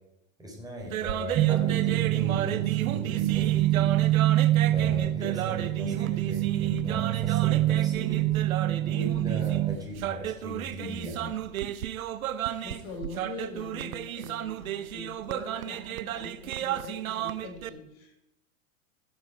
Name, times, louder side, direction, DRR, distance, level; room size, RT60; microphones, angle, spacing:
voice 1, 0.4-4.0 4.7-8.3 8.8-11.3, equal, 10° right, -1 dB, 4.1 m, -38 dB
sound 1, 0.8-17.7, right 11 dB, 80° right, 0.8 m, -34 dB
sound 2, 1.4-9.8, right 15 dB, 25° right, 0.5 m, -25 dB
voice 2, 12.6-18.2, left 3 dB, 50° left, 2 dB, 5.2 m, -43 dB
16.0 x 7.5 x 4.8 m, 0.89 s
hypercardioid pair, 115°, 41 cm